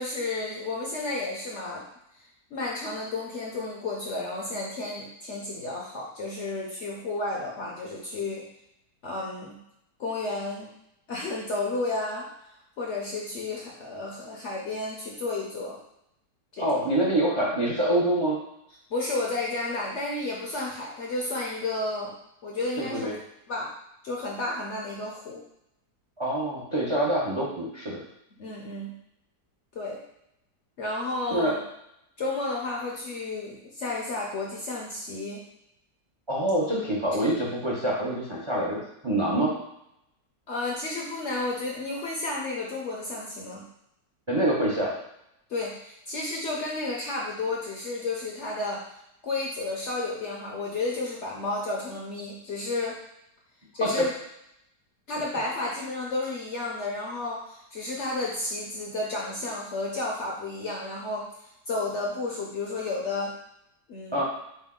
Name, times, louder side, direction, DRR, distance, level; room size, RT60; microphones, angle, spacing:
voice 1, 0.0-1.8 2.1-2.2 2.5-8.5 9.0-9.6 10.0-10.7 11.1-12.3 12.8-15.8 16.5-16.9 18.9-22.1 22.4-23.1 23.5-23.7 24.0-25.4 28.4-29.0 29.7-30.0 30.8-31.6 32.2-35.4 37.2-37.3 40.5-43.7 45.5-48.8 49.2-52.9 53.7-54.1 55.1-63.3 63.9-64.2, left 2 dB, 60° left, -3 dB, 0.7 m, -32 dB
voice 2, 16.6-18.4 22.8-23.2 26.2-28.0 31.3-31.6 36.3-39.5 44.3-44.9 53.8-54.0 64.1-64.2, right 1 dB, 45° right, -5 dB, 0.3 m, -26 dB
5.3 x 2.2 x 3.6 m, 0.81 s
omnidirectional pair, 1.8 m